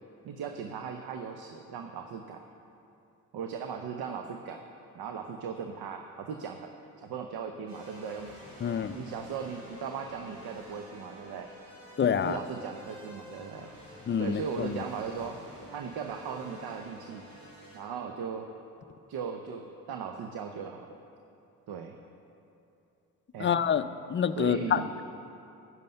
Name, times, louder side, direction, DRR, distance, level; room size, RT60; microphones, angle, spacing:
voice 1, 0.2-2.4 3.3-4.6 4.9-6.7 7.0-8.4 8.9-11.5 12.2-13.7 14.2-15.4 15.7-17.3 17.7-18.5 19.1-21.0 21.7-22.0 23.3-23.6 24.4-24.9, right 6 dB, 55° right, 5 dB, 0.8 m, -38 dB
sound 1, 7.7-17.8, left 1 dB, 90° right, 2.5 m, -49 dB
voice 2, 8.6-9.0 12.0-12.4 14.1-14.8 23.4-23.8 24.1-25.0, left 8 dB, 25° left, 12 dB, 0.5 m, -27 dB
10.5 x 9.8 x 5.5 m, 2.7 s
hypercardioid pair, 45°, 43 cm